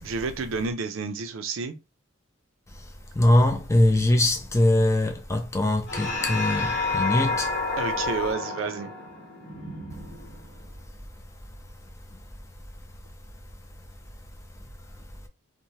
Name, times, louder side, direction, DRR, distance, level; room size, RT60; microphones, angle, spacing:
voice 1, 0.0-1.7 7.8-8.9, right 4 dB, 70° right, 0.4 m, -30 dB
voice 2, 3.2-7.5, left 1 dB, 15° left, 0.3 m, -22 dB
sound 1, 5.9-10.7, left 3 dB, 50° left, 1.0 m, -30 dB
2.7 x 2.1 x 3.0 m
head